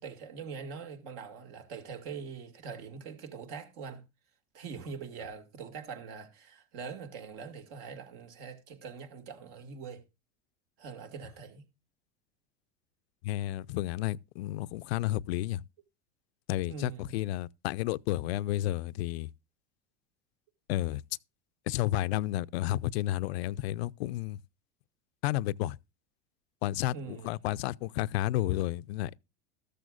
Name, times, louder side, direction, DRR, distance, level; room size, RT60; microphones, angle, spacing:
voice 1, 0.0-4.0 4.5-10.0 10.8-11.6 16.7-17.1 26.9-27.3, right 5 dB, 65° right, 2.3 m, -43 dB
voice 2, 13.2-15.6 16.5-19.3 20.7-21.0 21.7-24.4 25.2-25.8 26.6-29.2, left 15 dB, 75° left, 0.5 m, -31 dB
13.5 x 13.5 x 2.5 m
hypercardioid pair, 105°, 32 cm